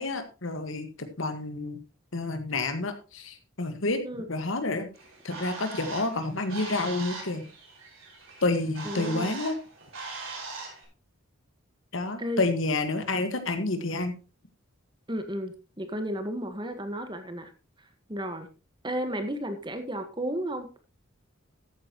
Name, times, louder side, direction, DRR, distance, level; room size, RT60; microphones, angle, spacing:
voice 1, 0.0-1.8 2.1-4.0 4.3-4.9 5.2-7.5 8.4-9.5 11.9-14.1, left 2 dB, 70° left, 8 dB, 1.7 m, -29 dB
Bird, 4.9-10.8, right 3 dB, 75° right, 5.6 m, -41 dB
voice 2, 8.8-9.4 12.2-12.4 15.1-17.5 18.1-18.5 18.8-20.7, equal, 20° right, 7 dB, 1.5 m, -33 dB
14.0 x 9.0 x 3.0 m, 0.31 s
head